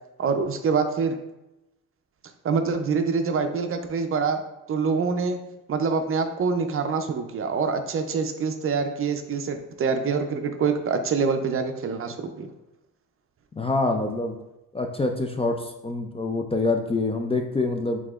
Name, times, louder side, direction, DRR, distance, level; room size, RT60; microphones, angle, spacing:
voice 1, 0.2-1.2 2.4-4.4 4.7-5.4 5.7-12.5, right 5 dB, 40° right, 7 dB, 0.5 m, -25 dB
voice 2, 13.5-14.4 14.7-18.0, left 3 dB, 20° left, 4 dB, 0.3 m, -26 dB
4.7 x 3.6 x 2.4 m, 0.93 s
cardioid pair, 85°, 33 cm